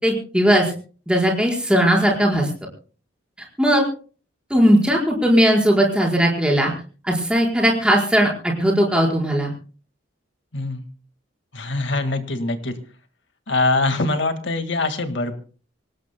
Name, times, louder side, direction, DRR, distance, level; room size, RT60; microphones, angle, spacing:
voice 1, 0.0-0.7 1.1-2.5 3.6-3.8 4.5-6.7 7.0-9.5, equal, 5° right, -1 dB, 4.7 m, -18 dB
voice 2, 10.5-10.9 11.5-12.7 13.5-15.3, left 2 dB, 70° left, 8 dB, 1.8 m, -23 dB
25.5 x 18.5 x 2.2 m, 0.39 s
head